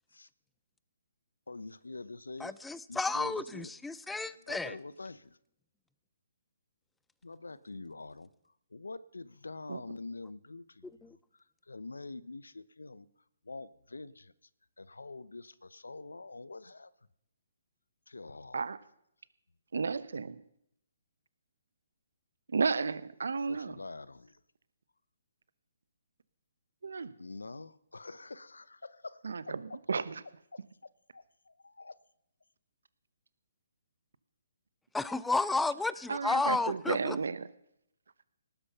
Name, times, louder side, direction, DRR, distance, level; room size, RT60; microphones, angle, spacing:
voice 1, 1.5-3.7 4.3-5.4 7.2-8.3 8.7-13.1 13.4-14.3 14.8-16.9 18.1-18.6 23.5-24.4 27.2-29.5 30.5-30.6 31.1-32.0, left 3 dB, 85° left, 18 dB, 0.7 m, -46 dB
voice 2, 2.4-4.8 11.0-11.2 34.9-37.2, left 3 dB, 5° left, 17 dB, 0.5 m, -32 dB
voice 3, 19.7-20.4 22.5-23.8 26.8-27.1 29.2-30.2 36.1-37.5, right 4 dB, 70° right, 16 dB, 0.9 m, -33 dB
18.5 x 9.8 x 5.6 m, 0.74 s
figure-of-eight pair, 140°, 0 cm